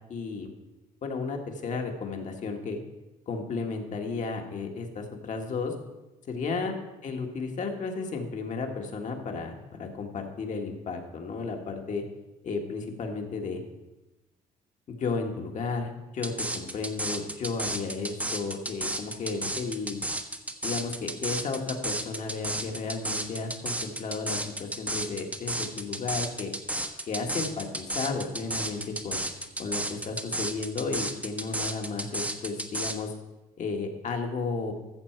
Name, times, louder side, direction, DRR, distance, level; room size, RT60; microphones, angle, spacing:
voice 1, 0.1-0.5 1.0-2.8 3.3-5.7 6.3-6.8 7.0-12.0 12.4-13.6 14.9-20.0 20.6-26.5 27.1-29.2 29.6-33.1 33.6-34.7, left 4 dB, 45° left, 3 dB, 1.7 m, -33 dB
sound 1, 16.2-33.0, right 1 dB, 10° right, 1.0 m, -32 dB
14.0 x 7.0 x 4.6 m, 1.0 s
cardioid pair, 110°, 17 cm